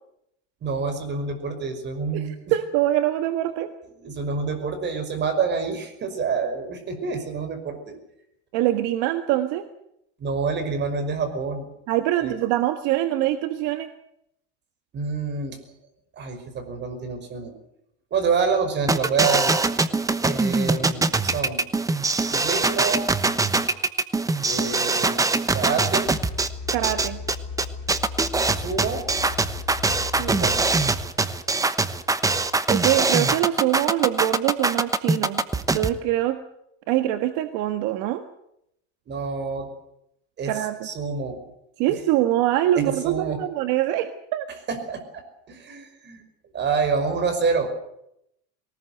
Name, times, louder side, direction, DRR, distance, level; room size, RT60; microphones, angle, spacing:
voice 1, 0.6-2.4 4.0-8.0 10.2-11.7 12.2-12.3 14.9-15.6 16.1-17.5 18.1-19.6 20.2-21.7 22.3-23.0 24.4-25.3 25.5-26.1 28.5-29.0 30.3-30.7 39.1-39.7 40.4-40.5 40.8-41.5 42.8-43.4 44.7-45.2 45.5-46.2 46.5-47.7, right 5 dB, 30° right, 7 dB, 5.6 m, -27 dB
voice 2, 2.5-3.7 8.5-9.6 11.9-13.9 26.7-27.2 30.2-30.4 32.7-35.4 35.7-36.4 36.9-38.2 40.5-40.7 41.8-44.4, right 13 dB, 65° right, 8 dB, 1.7 m, -24 dB
sound 1, 18.9-35.9, right 3 dB, 10° right, 1.1 m, -22 dB
sound 2, 26.0-31.0, left 5 dB, 40° left, 3.9 m, -36 dB
22.5 x 19.5 x 8.0 m, 0.77 s
cardioid pair, 145°, 33 cm